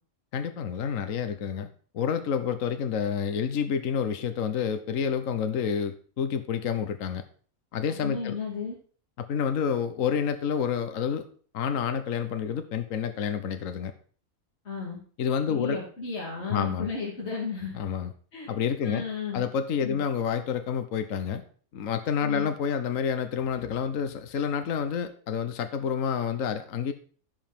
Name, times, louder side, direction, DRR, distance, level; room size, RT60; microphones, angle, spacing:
voice 1, 0.3-1.7 1.9-7.2 7.7-8.4 9.2-11.3 11.5-13.9 15.2-15.8 16.5-16.9 17.7-18.1 18.5-19.0 19.3-21.4 21.7-26.9, left 7 dB, 65° left, 9 dB, 1.3 m, -29 dB
voice 2, 8.0-8.7 14.6-15.0 15.5-17.8 18.3-18.5 18.8-19.4 19.8-20.0 22.2-22.5, left 5 dB, 50° left, -1 dB, 2.8 m, -33 dB
15.5 x 5.5 x 5.9 m, 0.43 s
omnidirectional pair, 1.5 m